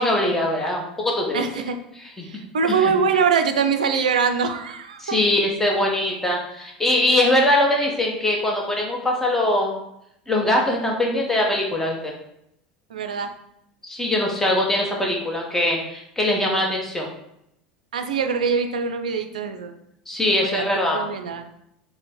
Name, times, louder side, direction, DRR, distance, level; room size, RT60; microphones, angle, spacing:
voice 1, 0.0-1.4 2.2-2.3 2.7-2.9 5.0-9.8 10.3-12.1 13.8-17.1 20.1-21.0, left 1 dB, 10° left, -1 dB, 1.0 m, -22 dB
voice 2, 1.3-1.8 2.2-5.2 12.9-13.3 17.9-19.7 20.3-20.7 20.9-21.4, right 6 dB, 70° right, 8 dB, 0.4 m, -23 dB
4.9 x 2.1 x 4.4 m, 0.77 s
figure-of-eight pair, 75°, 4 cm